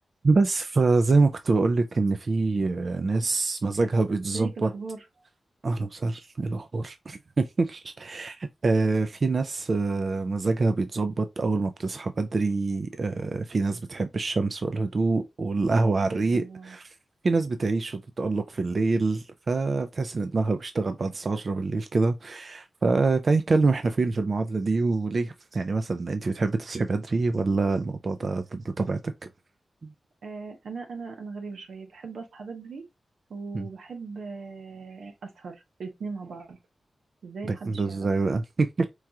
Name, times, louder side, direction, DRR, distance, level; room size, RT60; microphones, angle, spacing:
voice 1, 0.2-4.7 5.6-16.9 17.2-29.1 29.8-29.9 33.5-33.7 37.4-38.9, right 3 dB, 45° right, 0.3 m, -25 dB
voice 2, 4.1-5.0 16.0-16.8 30.2-32.8 33.3-36.6 37.2-38.1, right 4 dB, 90° right, 0.9 m, -39 dB
4.5 x 2.3 x 2.7 m
wide cardioid pair, 135°, 0 cm